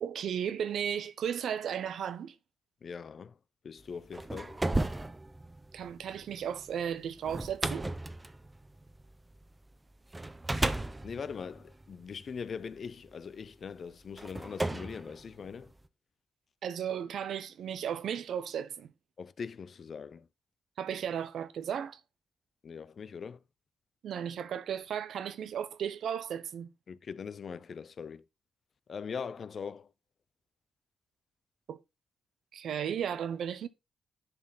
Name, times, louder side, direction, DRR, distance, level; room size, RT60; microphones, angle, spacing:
voice 1, 0.0-2.4 5.7-7.9 16.6-18.9 20.8-22.0 24.0-26.7 31.7-31.8 32.5-33.7, right 8 dB, 75° right, 0.8 m, -35 dB
voice 2, 2.8-3.3 3.6-4.6 11.0-15.7 19.2-20.3 22.6-23.4 26.9-28.2 28.9-29.9, left 6 dB, 45° left, 0.5 m, -41 dB
sound 1, 3.9-9.5 10.1-12.6 13.4-13.5 14.2-15.9, right 2 dB, 15° right, 0.6 m, -35 dB
10.5 x 4.2 x 4.1 m
cardioid pair, 125°, 0 cm